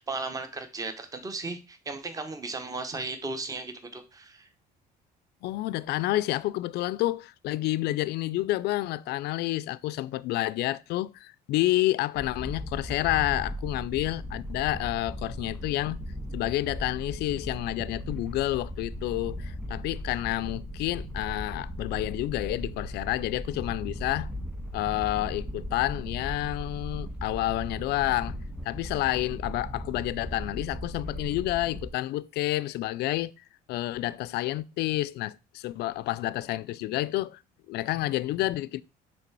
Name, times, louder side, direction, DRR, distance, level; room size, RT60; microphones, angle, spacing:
voice 1, 0.0-4.5, right 3 dB, 20° right, 0.9 m, -36 dB
voice 2, 5.4-16.0 16.3-24.3 24.7-28.4 28.6-33.3 33.7-37.4 37.7-38.8, left 16 dB, 75° left, 0.4 m, -29 dB
sound 1, 12.1-31.9, equal, 5° right, 1.6 m, -37 dB
6.9 x 3.3 x 4.5 m
cardioid pair, 110°, 17 cm